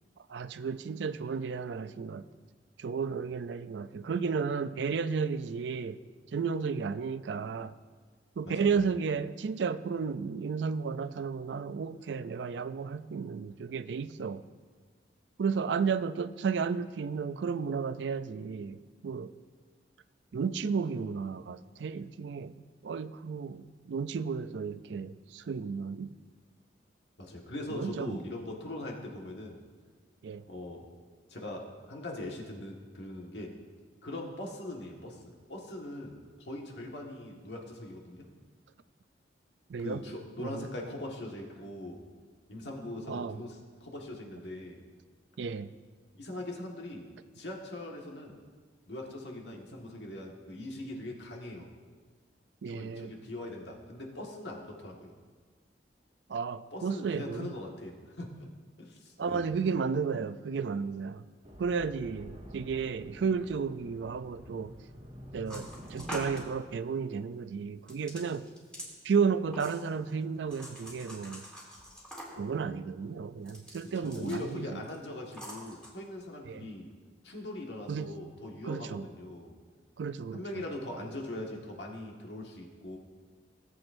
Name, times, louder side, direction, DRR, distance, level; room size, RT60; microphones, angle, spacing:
voice 1, 0.3-2.2 2.8-6.0 6.3-7.7 8.4-14.4 15.4-18.8 19.0-19.3 20.3-22.6 22.8-26.1 27.7-28.2 30.2-30.4 39.7-40.0 40.4-40.7 43.1-43.4 45.4-45.7 52.6-53.1 56.3-57.5 59.2-61.2 61.6-64.7 65.3-68.5 69.0-71.4 72.4-74.8 76.5-76.7 77.9-78.1 78.6-79.0 80.0-80.6, right 5 dB, 75° right, 0.4 m, -33 dB
voice 2, 27.2-29.6 30.5-30.9 31.3-33.6 34.0-38.3 39.8-42.0 42.5-44.8 46.1-47.1 47.3-48.4 48.9-51.7 52.7-55.1 56.7-58.5 58.8-59.5 73.9-76.9 77.2-79.5 80.3-83.0, left 1 dB, 70° left, 1.6 m, -41 dB
sound 1, 61.4-66.6, equal, 35° right, 1.5 m, -48 dB
sound 2, 65.5-66.5 67.9-68.9 69.5-70.1 70.5-72.5 73.4-74.5 74.8-75.0 75.3-75.9, equal, 5° left, 2.5 m, -45 dB
18.0 x 7.9 x 2.6 m
head